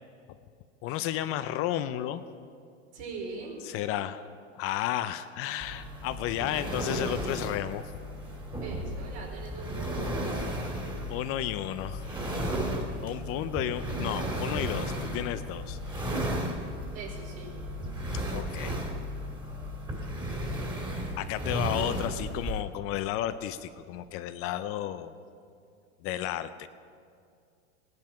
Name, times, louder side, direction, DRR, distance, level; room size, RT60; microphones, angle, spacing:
voice 1, 0.8-2.2 3.6-4.2 4.5-7.9 11.1-12.0 13.0-15.8 18.1-18.8 21.2-25.1 26.0-26.7, left 12 dB, 40° left, 11 dB, 0.6 m, -32 dB
voice 2, 2.9-3.6 8.6-10.4 16.9-17.5, right 3 dB, 65° right, -1 dB, 4.7 m, -41 dB
sound 1, 5.6-22.6, equal, 10° right, 2.5 m, -34 dB
17.5 x 10.5 x 5.7 m, 2.3 s
hypercardioid pair, 120°, 36 cm